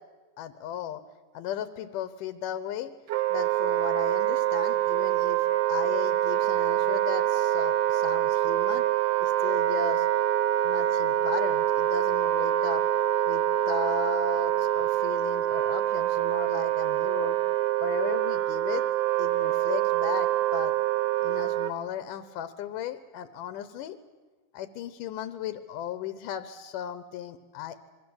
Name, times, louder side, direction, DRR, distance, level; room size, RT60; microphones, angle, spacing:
voice 1, 0.4-1.0 1.3-2.9 3.3-8.9 9.2-10.1 10.6-12.8 13.3-17.4 17.8-18.8 19.2-20.7 21.2-24.0 24.5-27.8, left 10 dB, 80° left, 13 dB, 2.5 m, -36 dB
Wind instrument woodwind instrument, 3.1-21.7, right 13 dB, 80° right, 2.7 m, -25 dB
26.5 x 23.5 x 7.9 m, 1.3 s
omnidirectional pair, 3.7 m